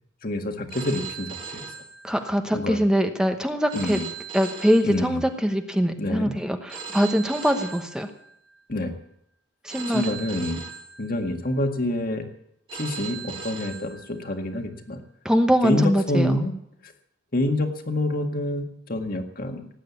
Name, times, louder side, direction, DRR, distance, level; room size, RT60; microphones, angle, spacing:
voice 1, 0.2-1.6 2.5-2.8 3.7-4.1 4.8-5.2 6.0-6.3 8.7-8.9 9.9-10.6 11.0-12.3 12.7-15.0 15.6-16.6 16.8-16.9 17.3-19.7, left 1 dB, 45° left, 4 dB, 1.8 m, -27 dB
Telephone, 0.7-2.6 3.7-5.6 6.7-8.6 9.7-11.6 12.7-14.6, right 6 dB, 25° right, 1.8 m, -39 dB
voice 2, 2.0-4.0 4.3-8.1 9.6-10.2 15.2-16.4, equal, 5° right, 5 dB, 1.0 m, -23 dB
18.0 x 9.1 x 8.3 m, 0.75 s
head